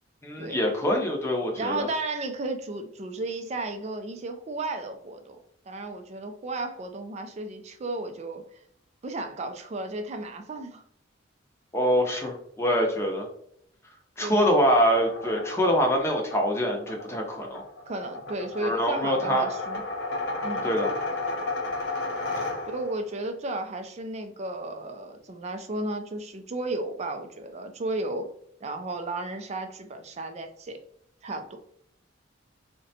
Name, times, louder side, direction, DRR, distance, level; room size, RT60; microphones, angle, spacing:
voice 1, 0.2-1.9 11.7-13.3 14.2-17.6 18.6-19.5 20.6-20.9, equal, 15° left, 1 dB, 0.6 m, -24 dB
voice 2, 1.6-5.4 5.7-8.6 9.0-10.8 14.2-14.5 17.9-19.8 20.4-20.6 22.7-28.3 28.6-30.8 31.2-31.6, right 2 dB, 35° right, 6 dB, 0.4 m, -34 dB
sound 1, 14.8-23.0, left 2 dB, 65° left, 0.7 m, -33 dB
3.8 x 2.2 x 2.7 m, 0.67 s
head